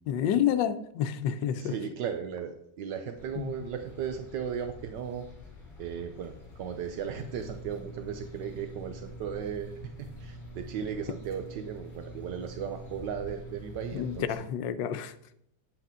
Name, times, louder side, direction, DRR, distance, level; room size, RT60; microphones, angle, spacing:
voice 1, 0.1-1.7 3.4-3.5 13.9-15.1, left 9 dB, 85° left, 12 dB, 1.3 m, -29 dB
voice 2, 1.5-5.3 5.8-14.3, right 8 dB, 75° right, 7 dB, 1.3 m, -36 dB
sound 1, 3.1-14.3, left 4 dB, 25° left, 3.0 m, -49 dB
sound 2, 7.2-14.3, right 3 dB, 60° left, 2.3 m, -46 dB
9.4 x 7.7 x 3.7 m, 0.76 s
omnidirectional pair, 1.9 m